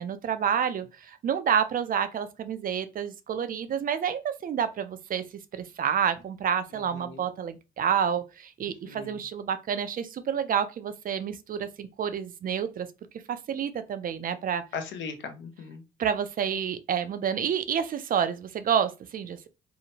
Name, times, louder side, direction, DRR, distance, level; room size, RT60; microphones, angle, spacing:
voice 1, 0.0-5.2 5.5-12.9 13.3-14.6 16.0-19.5, right 8 dB, 45° right, 0.4 m, -29 dB
voice 2, 8.6-9.2 14.7-15.8, left 5 dB, 70° left, 0.6 m, -38 dB
2.8 x 2.1 x 2.7 m
cardioid pair, 90°, 20 cm